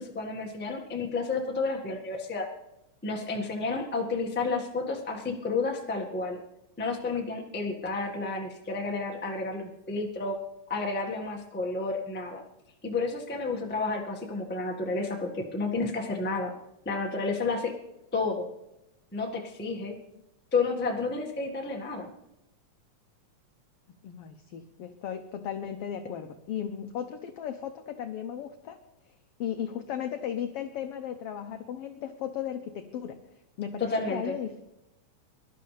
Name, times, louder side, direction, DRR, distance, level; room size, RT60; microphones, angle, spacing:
voice 1, 0.0-2.5 3.0-6.4 6.8-10.4 10.7-12.4 12.8-16.5 16.8-17.7 18.1-18.5 19.1-20.0 20.5-22.1 33.8-34.4, left 3 dB, 10° left, 0 dB, 0.5 m, -31 dB
voice 2, 24.0-28.8 29.4-33.2 33.6-34.6, left 9 dB, 80° left, 7 dB, 1.3 m, -36 dB
24.0 x 12.0 x 3.3 m, 0.89 s
omnidirectional pair, 3.5 m